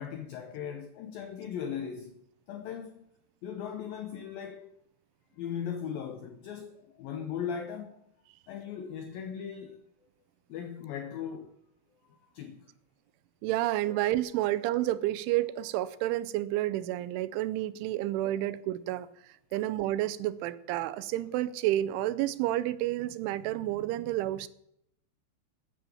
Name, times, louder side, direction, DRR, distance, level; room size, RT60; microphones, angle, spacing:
voice 1, 0.0-2.2 2.5-3.1 3.4-4.7 5.3-8.0 8.5-9.8 10.5-11.6 12.1-12.7 13.9-14.1 17.9-18.1 18.3-18.4 19.5-19.6, left 8 dB, 85° left, 2.0 m, -38 dB
voice 2, 13.4-19.1 19.5-24.5, right 14 dB, 90° right, 3.2 m, -30 dB
15.0 x 10.0 x 7.1 m
omnidirectional pair, 5.4 m